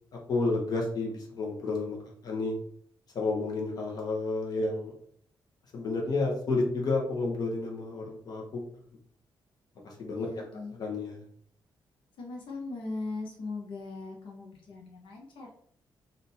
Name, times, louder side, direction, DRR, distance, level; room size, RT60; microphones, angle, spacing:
voice 1, 0.1-2.6 3.1-4.9 5.7-8.6 9.8-10.3 10.7-11.2, left 3 dB, 50° left, -1 dB, 1.1 m, -31 dB
voice 2, 10.2-10.7 12.2-15.5, left 3 dB, 85° left, -1 dB, 0.9 m, -39 dB
3.5 x 2.7 x 4.2 m, 0.62 s
wide cardioid pair, 150°, 8 cm